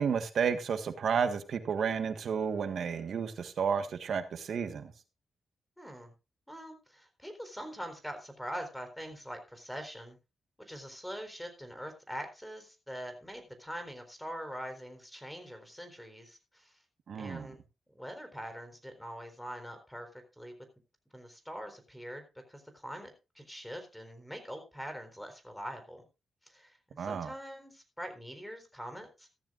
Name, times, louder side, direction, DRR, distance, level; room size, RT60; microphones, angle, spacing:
voice 1, 0.0-4.9 17.1-17.5 27.0-27.3, right 6 dB, 70° right, 9 dB, 1.5 m, -31 dB
voice 2, 5.8-6.1 6.5-10.2 10.6-16.8 17.2-17.6 17.9-20.1 20.4-20.5 21.1-26.0 26.4-29.3, equal, 5° left, 7 dB, 4.0 m, -43 dB
15.5 x 13.0 x 2.5 m, 0.28 s
cardioid pair, 75°, 0 cm